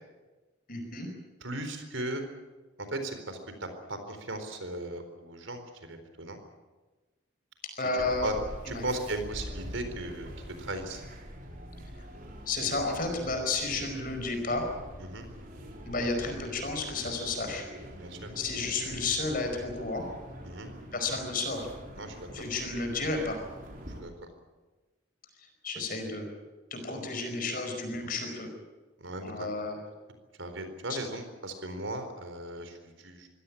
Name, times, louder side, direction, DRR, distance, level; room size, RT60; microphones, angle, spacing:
voice 1, 0.7-1.1 7.8-8.3 8.7-8.8 12.5-14.7 15.9-17.7 18.3-20.0 20.9-21.7 22.3-23.4 25.6-26.3 26.7-28.5 29.2-29.8 30.9-31.0, left 3 dB, 45° left, 5 dB, 5.0 m, -32 dB
voice 2, 1.4-2.2 2.9-6.4 8.2-8.3 8.7-10.3 10.6-11.0 15.0-15.2 17.9-18.3 20.4-20.7 22.0-22.3 24.0-24.1 28.0-28.1 29.0-29.5 30.4-33.3, right 1 dB, 75° right, 8 dB, 4.2 m, -37 dB
sound 1, 8.0-24.0, equal, 45° right, 4.7 m, -45 dB
25.0 x 17.0 x 8.7 m, 1.2 s
head